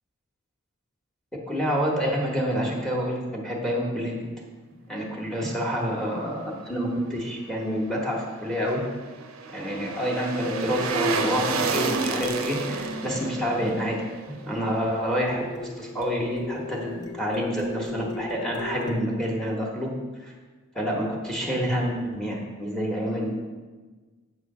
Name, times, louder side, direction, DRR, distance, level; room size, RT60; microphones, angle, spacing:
voice 1, 1.5-4.3 4.9-8.8 9.5-14.0 14.3-19.9 20.2-20.3 20.7-23.4, equal, ahead, -1 dB, 1.1 m, -28 dB
sound 1, 8.2-15.4 15.8-15.9, right 4 dB, 85° right, 0.6 m, -31 dB
sound 2, 10.5-14.8 15.3-18.9, left 4 dB, 20° left, 0.6 m, -38 dB
7.8 x 3.2 x 6.0 m, 1.3 s
head